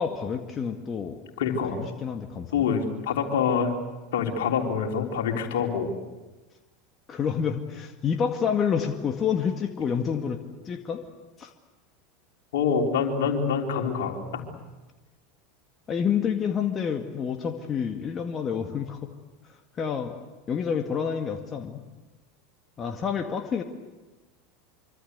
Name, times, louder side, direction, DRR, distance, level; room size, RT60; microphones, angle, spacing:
voice 1, 0.0-1.2 1.7-2.7 7.1-11.0 11.4-11.5 15.9-19.1 19.5-20.1 20.5-21.8 22.8-23.6, left 7 dB, 30° left, 4 dB, 2.0 m, -28 dB
voice 2, 1.4-1.8 2.5-3.7 4.1-5.9 12.5-14.5, left 6 dB, 70° left, 3 dB, 3.8 m, -26 dB
25.5 x 25.0 x 8.2 m, 1.1 s
hypercardioid pair, 80°, 0 cm